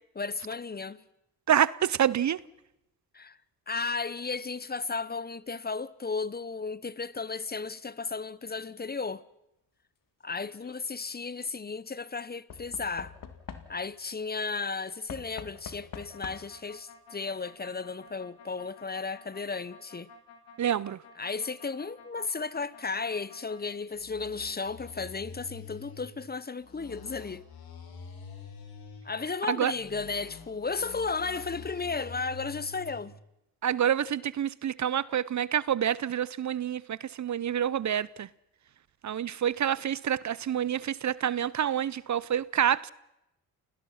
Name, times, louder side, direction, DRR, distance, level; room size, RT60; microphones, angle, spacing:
voice 1, 0.2-1.0 3.1-3.4 3.7-9.2 10.2-13.1 13.7-20.1 21.2-27.4 29.0-33.1, left 4 dB, 25° left, 0.9 m, -34 dB
voice 2, 1.5-2.4 20.6-21.0 29.5-29.7 33.6-38.3 39.0-42.9, right 9 dB, 50° right, 0.7 m, -27 dB
Knock / Wood, 10.3-10.8 12.5-14.0 15.1-16.7 17.7-17.8 18.0-18.1, left 7 dB, 65° left, 2.3 m, -45 dB
sound 1, 15.9-23.6 23.9-26.1 26.6-29.1 29.6-33.0, left 5 dB, 80° left, 4.6 m, -48 dB
29.5 x 18.0 x 5.8 m
cardioid pair, 70°, 36 cm